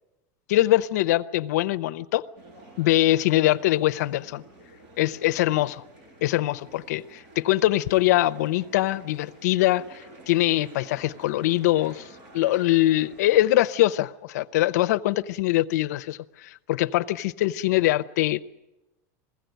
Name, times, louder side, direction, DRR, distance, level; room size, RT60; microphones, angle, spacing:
voice 1, 0.5-2.3 2.8-4.4 5.0-5.8 6.2-12.1 12.3-18.4, left 15 dB, 80° left, 0.7 m, -23 dB
sound 1, 2.4-13.6, right 2 dB, 50° right, 7.0 m, -50 dB
21.5 x 16.0 x 9.2 m
supercardioid pair, 155°, 9 cm